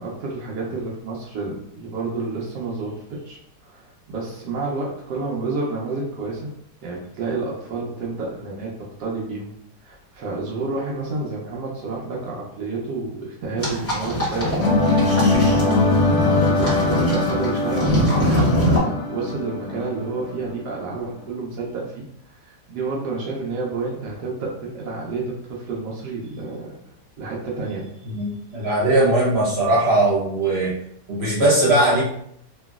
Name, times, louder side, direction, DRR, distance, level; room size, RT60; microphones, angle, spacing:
voice 1, 0.0-6.5 6.8-8.7 9.0-9.5 9.8-26.8 27.2-28.1, right 3 dB, 80° right, -3 dB, 1.2 m, -30 dB
sound 1, 13.6-18.8, equal, 10° left, 0.8 m, -23 dB
sound 2, 14.6-20.5, left 3 dB, 75° left, 1.0 m, -21 dB
voice 2, 28.1-30.7 31.1-32.0, right 1 dB, 45° right, -6 dB, 1.1 m, -19 dB
3.0 x 2.6 x 2.3 m, 0.71 s
omnidirectional pair, 1.8 m